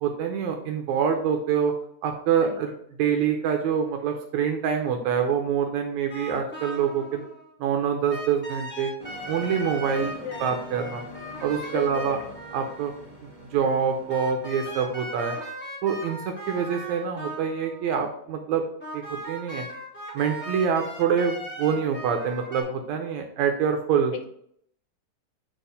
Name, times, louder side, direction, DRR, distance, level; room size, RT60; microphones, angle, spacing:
voice 1, 0.0-1.7 2.0-2.7 3.0-7.2 7.6-8.9 9.3-10.1 10.4-11.0 11.4-12.2 12.5-12.9 13.2-15.4 15.8-18.6 18.9-19.6 20.1-24.1, right 7 dB, 75° right, 4 dB, 1.9 m, -25 dB
sound 1, 6.1-7.5 8.1-13.0 14.1-17.9 18.8-22.6, right 1 dB, 5° left, 1.8 m, -38 dB
sound 2, 9.0-14.9, equal, 20° right, 0.9 m, -44 dB
voice 2, 10.0-10.6 11.7-12.2 24.1-24.2, left 6 dB, 80° left, 6 dB, 2.1 m, -36 dB
4.8 x 4.5 x 5.1 m, 0.67 s
omnidirectional pair, 3.4 m